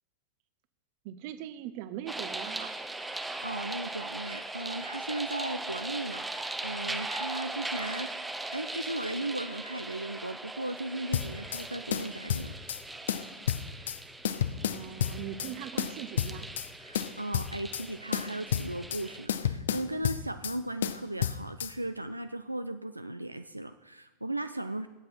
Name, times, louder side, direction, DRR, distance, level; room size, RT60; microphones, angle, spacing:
voice 1, 1.0-2.8 14.6-16.5, right 11 dB, 45° right, 13 dB, 0.7 m, -41 dB
sound 1, 2.1-19.3, right 2 dB, 5° right, 0.7 m, -39 dB
voice 2, 3.1-8.2 8.5-12.5 16.8-24.9, right 1 dB, 85° right, 10 dB, 0.3 m, -37 dB
sound 2, 11.1-11.6 11.9-12.8 13.1-14.0 14.2-15.5 15.8-16.7 16.9-17.8 18.1-19.0 19.3-20.6 20.8-21.7, left 9 dB, 60° left, 0.5 m, -31 dB
17.0 x 7.9 x 4.3 m, 1.2 s
figure-of-eight pair, 90°, 0 cm